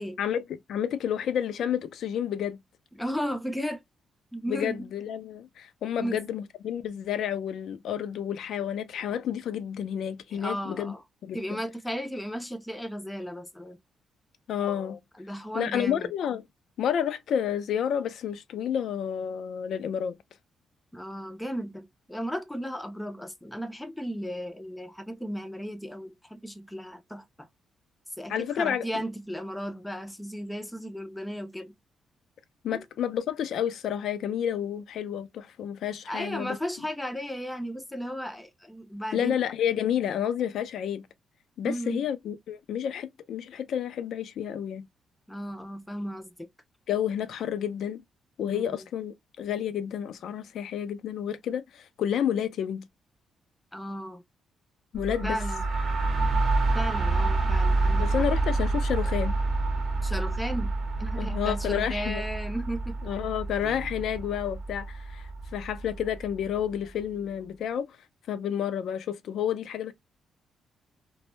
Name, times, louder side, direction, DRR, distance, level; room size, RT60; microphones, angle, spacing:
voice 1, 0.2-2.6 4.5-10.9 11.2-11.6 14.5-15.0 15.5-16.4 16.8-20.2 28.3-28.8 32.6-36.6 39.1-41.0 41.6-44.9 46.9-48.0 48.4-52.9 54.9-55.4 58.0-59.3 61.2-62.2 63.0-67.9 68.3-69.9, left 9 dB, 75° left, 0.3 m, -30 dB
voice 2, 2.9-3.8 4.3-4.9 6.0-6.2 10.3-11.0 11.3-13.8 15.2-16.1 20.9-27.5 28.2-31.7 32.7-32.8 36.1-39.4 41.6-42.0 45.3-46.5 48.5-48.8 53.7-54.2 55.2-55.6 56.7-58.3 60.0-60.7 61.0-63.0, equal, 5° left, 0.4 m, -35 dB
sound 1, 54.9-66.6, right 3 dB, 50° right, 0.7 m, -28 dB
Piano, 63.6-64.6, equal, 90° right, 0.6 m, -49 dB
2.1 x 2.0 x 3.0 m
cardioid pair, 85°, 0 cm